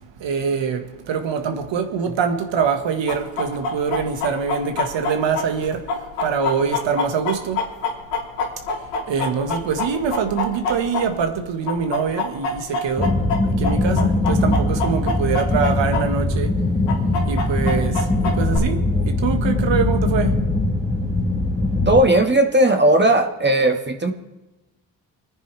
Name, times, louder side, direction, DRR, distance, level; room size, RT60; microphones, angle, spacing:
voice 1, 0.2-5.8 6.2-7.6 9.1-13.2 13.6-16.6 17.3-18.8 19.1-20.4, right 6 dB, 65° right, 1.8 m, -24 dB
Chicken rooster, 3.1-11.4 11.7-16.0 16.3-16.4 16.9-18.6, left 3 dB, 90° left, 3.1 m, -25 dB
sound 1, 13.0-22.0, left 2 dB, 15° left, 2.2 m, -21 dB
voice 2, 21.9-24.1, right 1 dB, 20° right, 1.8 m, -16 dB
29.5 x 9.9 x 3.4 m
hypercardioid pair, 50°, 48 cm